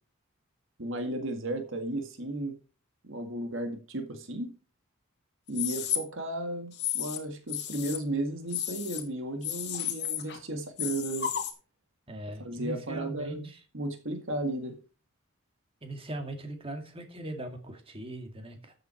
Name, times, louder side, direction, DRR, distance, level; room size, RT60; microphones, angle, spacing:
voice 1, 0.8-2.6 3.0-4.5 5.5-11.3 12.4-13.5 13.7-14.7, right 1 dB, 65° right, 6 dB, 1.9 m, -34 dB
sound 1, 5.5-6.0 6.7-7.2 7.5-8.0 8.5-9.0 9.4-10.4 10.8-11.5, left 10 dB, 55° left, 2.3 m, -33 dB
voice 2, 12.1-13.6 15.8-18.7, right 1 dB, 25° right, 5 dB, 2.3 m, -39 dB
13.5 x 7.9 x 4.4 m, 0.35 s
head